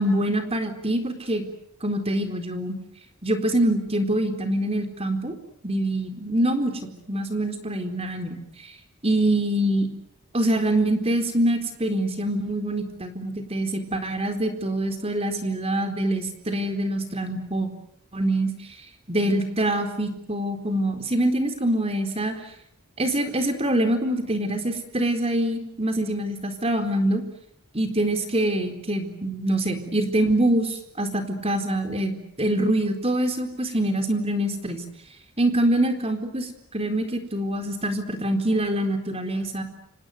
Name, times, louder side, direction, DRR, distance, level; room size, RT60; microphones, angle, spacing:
voice 1, 0.0-1.4 1.8-2.7 3.2-5.3 5.6-6.7 7.1-8.4 9.0-9.9 10.3-17.7 18.1-18.5 19.1-22.4 23.0-27.2 27.7-34.8 35.4-39.6, right 1 dB, 25° right, 7 dB, 4.2 m, -25 dB
30.0 x 27.0 x 6.7 m, 0.71 s
head